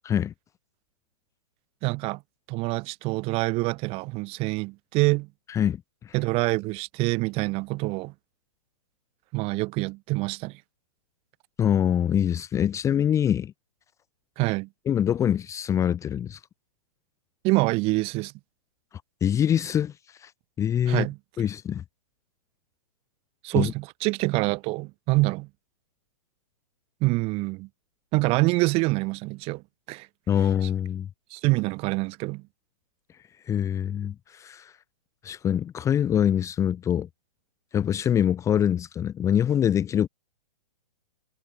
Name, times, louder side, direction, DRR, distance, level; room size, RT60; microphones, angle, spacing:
voice 1, 1.8-2.2 2.5-5.3 6.1-8.1 9.3-10.5 14.4-14.7 17.4-18.3 20.9-21.2 23.4-25.5 27.0-27.7 28.1-29.6 29.9-30.1 31.3-32.4, right 24 dB, 30° right, 2.5 m, -26 dB
voice 2, 5.5-6.1 11.6-13.5 14.9-16.4 19.2-20.3 20.6-21.1 21.4-21.8 23.5-23.7 30.3-31.1 33.5-34.7 35.2-37.1 37.7-40.1, left 9 dB, 15° left, 1.1 m, -24 dB
hypercardioid pair, 135°, 19 cm